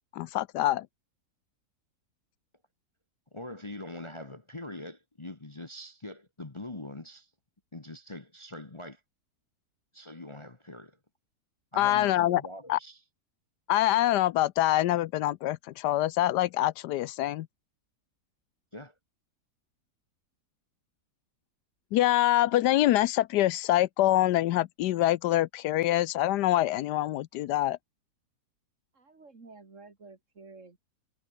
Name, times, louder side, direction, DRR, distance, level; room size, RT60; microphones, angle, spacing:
voice 1, 0.1-0.9 11.8-12.4 12.7-12.8 13.7-17.5 21.9-27.8, left 14 dB, 80° left, 1.2 m, -25 dB
voice 2, 3.3-7.3 7.7-9.0 9.9-11.0 11.7-13.0 18.7-18.9, left 1 dB, 20° left, 1.2 m, -43 dB
voice 3, 28.9-30.8, right 3 dB, 45° right, 2.9 m, -51 dB
omnidirectional pair, 1.8 m